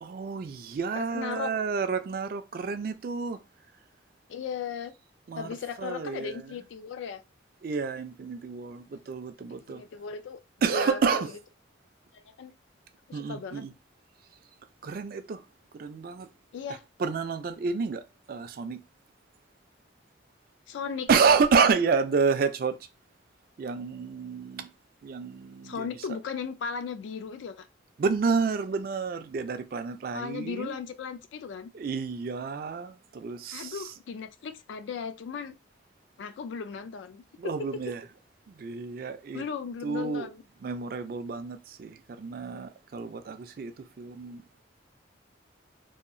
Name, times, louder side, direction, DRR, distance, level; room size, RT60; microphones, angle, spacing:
voice 1, 0.0-3.4 5.3-5.5 5.8-6.5 7.6-9.8 10.6-11.3 13.1-13.7 14.8-15.4 15.8-16.3 17.0-18.0 18.3-18.8 21.1-22.7 23.6-24.7 25.0-25.9 28.0-30.8 31.7-33.8 37.4-38.0 38.6-39.4 39.8-40.3 40.6-43.7 44.0-44.4, right 5 dB, 50° right, 0.3 m, -29 dB
voice 2, 0.9-1.5 4.3-4.9 5.4-7.2 8.9-9.0 9.5-10.4 10.7-11.3 12.1-12.5 13.1-13.6 16.5-16.8 20.7-21.1 25.6-27.7 30.1-31.7 33.5-35.5 36.2-37.8 39.3-40.4, left 6 dB, 75° left, 0.3 m, -36 dB
2.8 x 2.3 x 2.5 m
head